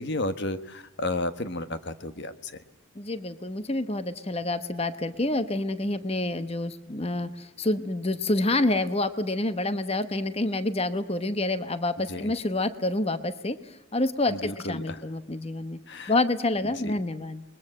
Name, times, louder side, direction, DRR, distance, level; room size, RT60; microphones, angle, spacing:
voice 1, 0.0-2.6 12.1-12.3 14.3-15.0 15.9-16.1 16.6-16.9, left 2 dB, 50° left, 10 dB, 1.3 m, -32 dB
voice 2, 3.0-13.6 13.9-15.8 16.1-17.4, left 2 dB, 25° left, 11 dB, 1.0 m, -28 dB
29.0 x 21.5 x 7.8 m, 0.85 s
head